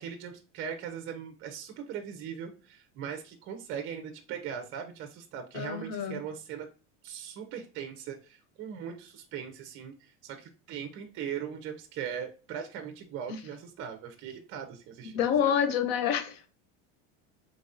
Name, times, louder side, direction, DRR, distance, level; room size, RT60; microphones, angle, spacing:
voice 1, 0.0-6.7 7.0-15.5, right 8 dB, 40° right, 0.7 m, -40 dB
voice 2, 5.5-6.2 13.3-13.4 15.1-16.5, left 8 dB, 50° left, 0.8 m, -28 dB
3.9 x 3.5 x 2.6 m
cardioid pair, 150°, 34 cm